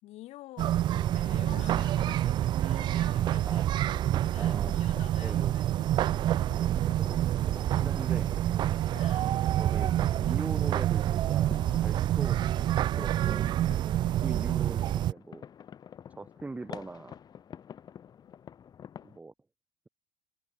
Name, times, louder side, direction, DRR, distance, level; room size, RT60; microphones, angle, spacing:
voice 1, 0.0-6.1 9.0-9.8 14.1-14.4 18.2-18.6, left 16 dB, 50° left, 6.0 m, -50 dB
sound 1, 0.6-15.1, right 12 dB, 30° right, 0.4 m, -27 dB
sound 2, 3.5-19.2, left 8 dB, 30° left, 6.9 m, -50 dB
voice 2, 4.4-4.8 5.2-5.5 6.6-7.2 7.5-8.3 9.6-12.4 13.0-13.5 14.1-15.5 16.1-17.2 19.0-19.3, right 3 dB, 10° right, 3.2 m, -41 dB
supercardioid pair, 140°, 14 cm